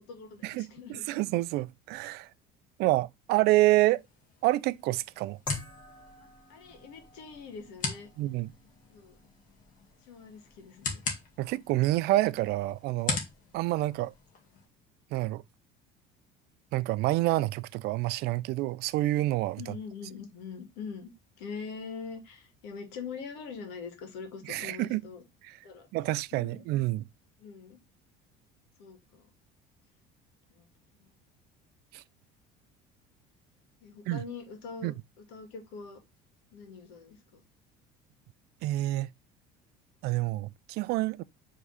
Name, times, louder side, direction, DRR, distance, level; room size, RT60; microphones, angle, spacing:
voice 1, 0.0-1.2 6.5-8.1 8.9-9.2 10.1-11.0 19.6-21.1 21.4-25.2 25.6-25.9 26.3-26.6 27.4-27.8 28.8-29.3 30.5-30.6 31.0-31.1 33.8-34.9 35.3-36.0 36.5-37.4, left 5 dB, 80° left, 2.1 m, -43 dB
voice 2, 1.1-2.3 2.8-4.0 4.4-5.4 8.2-8.5 11.4-13.2 13.5-14.1 15.1-15.4 16.7-19.6 24.4-25.0 25.4-25.6 25.9-27.0 31.9-32.0 34.1-34.2 34.8-34.9 38.6-39.1 40.0-41.2, right 17 dB, 65° right, 0.4 m, -27 dB
sound 1, 3.7-14.7, left 4 dB, 50° left, 2.1 m, -41 dB
sound 2, 5.5-14.3, left 3 dB, 25° left, 2.7 m, -48 dB
4.7 x 3.7 x 5.6 m
cardioid pair, 110°, 18 cm